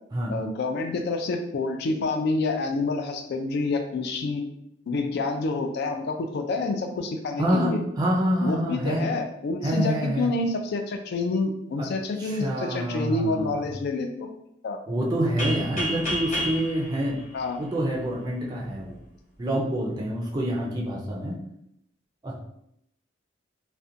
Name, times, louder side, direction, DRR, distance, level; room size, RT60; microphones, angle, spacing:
voice 1, 0.3-4.4 4.9-7.8 8.4-14.3 14.6-14.8 17.3-17.6, left 3 dB, 60° left, 5 dB, 0.3 m, -28 dB
voice 2, 7.4-9.1 9.6-10.3 11.8-11.9 12.2-13.7 14.9-17.2 17.6-19.0 19.4-21.4 22.2-22.4, right 1 dB, 20° right, -2 dB, 0.4 m, -27 dB
sound 1, 15.4-18.1, left 1 dB, 40° left, 0.8 m, -31 dB
2.5 x 2.1 x 2.6 m, 0.77 s
head